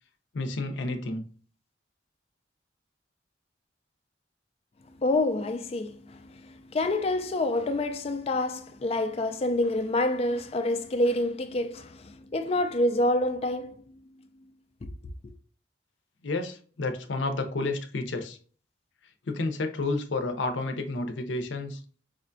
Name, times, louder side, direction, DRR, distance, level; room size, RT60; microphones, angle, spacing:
voice 1, 0.3-1.2 16.2-18.4 19.3-21.8, left 2 dB, 75° left, 0.6 m, -30 dB
voice 2, 5.0-6.2 6.7-13.8, left 1 dB, 35° left, 0.3 m, -27 dB
5.0 x 2.2 x 2.6 m
head